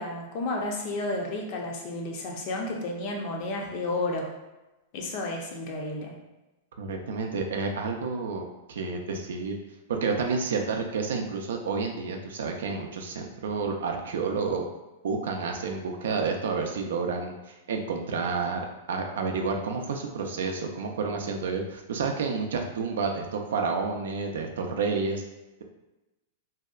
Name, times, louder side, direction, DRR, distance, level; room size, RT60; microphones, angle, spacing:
voice 1, 0.0-4.3 4.9-6.1, left 2 dB, 50° left, 1 dB, 0.5 m, -32 dB
voice 2, 6.8-9.6 9.9-14.7 15.0-17.3 17.7-25.2, right 4 dB, 75° right, 3 dB, 0.4 m, -30 dB
2.7 x 2.1 x 2.4 m, 1.0 s
hypercardioid pair, 120°, 0 cm